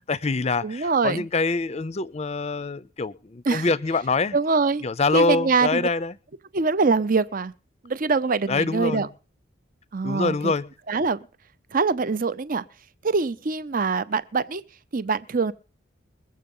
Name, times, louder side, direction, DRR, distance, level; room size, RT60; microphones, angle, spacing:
voice 1, 0.1-4.4 4.8-6.1 8.5-9.1 10.0-10.7, left 3 dB, 35° left, 0.6 m, -25 dB
voice 2, 0.6-1.2 3.5-3.7 4.3-4.8 5.1-5.9 6.5-7.5 7.8-9.1 9.9-10.5 10.9-11.2 11.7-12.6 13.0-14.6 14.9-15.5, right 4 dB, 45° right, 0.6 m, -23 dB
22.0 x 7.7 x 5.4 m
head